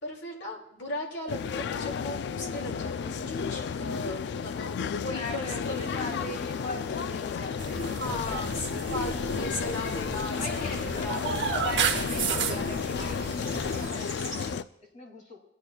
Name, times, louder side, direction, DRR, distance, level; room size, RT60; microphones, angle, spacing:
voice 1, 0.0-5.9 7.8-11.6, left 1 dB, 85° left, -1 dB, 2.5 m, -37 dB
sound 1, 1.3-14.6, left 6 dB, 65° left, 0.3 m, -32 dB
voice 2, 5.0-9.1 10.4-14.7 14.9-15.4, left 2 dB, 45° left, 0 dB, 2.5 m, -41 dB
sound 2, 5.6-14.5, equal, 20° left, 2.6 m, -48 dB
sound 3, 7.6-13.9, right 6 dB, 80° right, 0.8 m, -33 dB
20.0 x 10.0 x 2.3 m, 0.82 s
head